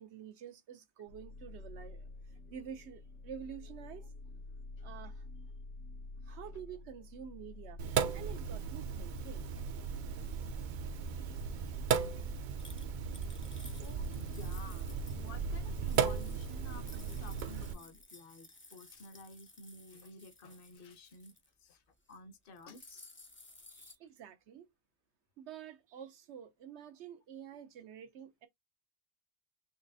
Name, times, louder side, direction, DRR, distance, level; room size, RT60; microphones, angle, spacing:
voice 1, 0.0-2.1 2.5-4.1 4.8-5.2 6.3-9.5 11.2-11.7 23.7-24.7 25.4-28.5, right 8 dB, 85° right, 1.0 m, -49 dB
sound 1, 1.1-18.0, left 2 dB, 80° left, 1.0 m, -51 dB
Sink (filling or washing), 7.8-17.7, right 6 dB, 60° right, 0.6 m, -36 dB
sound 2, 12.6-15.3 15.7-21.5 21.9-22.2 22.4-24.0, left 2 dB, 20° left, 0.4 m, -57 dB
voice 2, 13.7-21.3 21.6-21.8 22.1-23.1, left 3 dB, 55° left, 1.0 m, -53 dB
4.1 x 3.0 x 2.7 m
omnidirectional pair, 1.1 m